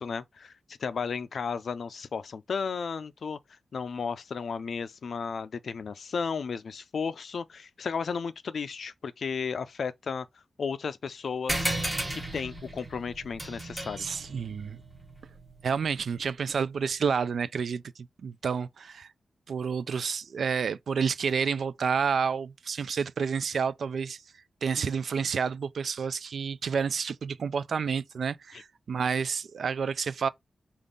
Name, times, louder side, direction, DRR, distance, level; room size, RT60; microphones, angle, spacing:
voice 1, 0.0-10.3 10.6-11.7 12.1-14.1 28.5-28.6, left 5 dB, 60° left, 0.4 m, -34 dB
sound 1, 11.5-16.4, right 1 dB, 10° right, 0.9 m, -35 dB
voice 2, 14.0-14.8 15.6-19.1 19.5-24.2 24.6-30.3, right 6 dB, 70° right, 0.3 m, -29 dB
5.2 x 2.4 x 3.7 m
wide cardioid pair, 170°, 0 cm